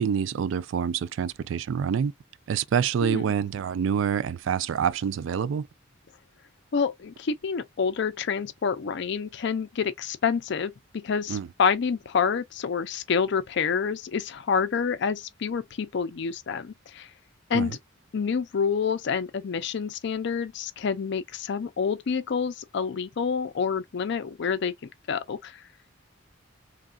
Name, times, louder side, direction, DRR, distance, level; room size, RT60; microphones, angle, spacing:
voice 1, 0.0-2.1 2.5-5.7 11.3-11.5 17.5-17.8, right 7 dB, 70° right, 0.3 m, -26 dB
voice 2, 6.7-17.1 17.5-17.8 18.1-24.7 25.1-25.6, left 6 dB, 60° left, 0.4 m, -28 dB
3.1 x 2.3 x 2.3 m
head